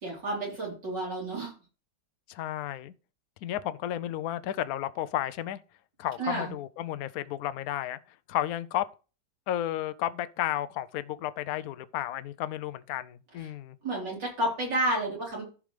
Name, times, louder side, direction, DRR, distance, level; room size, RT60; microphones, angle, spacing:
voice 1, 0.0-1.5 6.2-6.5 13.8-15.4, right 1 dB, 70° right, 4.6 m, -30 dB
voice 2, 2.3-2.9 3.4-5.6 6.0-8.0 8.3-8.9 9.5-13.8, left 12 dB, 70° left, 0.9 m, -32 dB
14.5 x 5.1 x 3.3 m
omnidirectional pair, 2.0 m